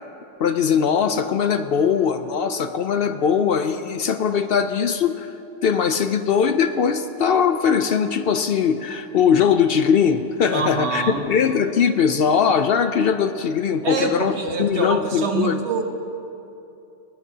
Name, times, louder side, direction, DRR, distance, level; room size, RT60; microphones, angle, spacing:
voice 1, 0.4-5.3 5.6-14.3 14.6-15.6, left 7 dB, 65° left, 9 dB, 0.7 m, -20 dB
voice 2, 10.5-11.2 13.8-15.8, right 4 dB, 70° right, 3 dB, 1.4 m, -25 dB
20.0 x 17.5 x 2.8 m, 2.8 s
omnidirectional pair, 1.2 m